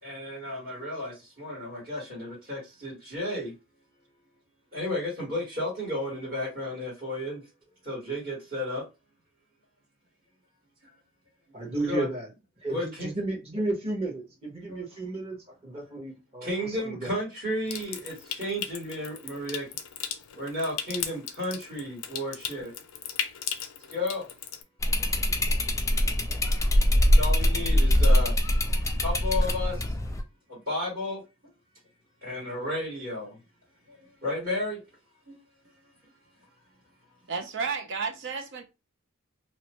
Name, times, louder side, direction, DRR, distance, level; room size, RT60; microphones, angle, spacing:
voice 1, 0.0-3.6 4.7-7.4 7.8-8.8 11.9-12.0 12.7-13.1 14.7-14.8 16.4-19.7 20.3-22.7 23.9-24.3 25.5-25.6 26.9-28.4 29.0-29.9 30.5-31.2 32.2-33.4 33.9-34.8 35.3-35.4, left 1 dB, 45° right, 1.6 m, -33 dB
voice 2, 11.5-12.3 12.6-15.4 15.6-17.1, right 2 dB, 30° right, 1.2 m, -33 dB
Water tap faucet / Sink (filling or washing) / Trickle dribble, 17.7-24.6, left 9 dB, 80° left, 0.4 m, -37 dB
sound 1, 24.8-30.2, left 1 dB, 15° left, 0.3 m, -23 dB
voice 3, 37.3-38.6, right 5 dB, 60° right, 0.7 m, -32 dB
2.8 x 2.2 x 2.9 m
head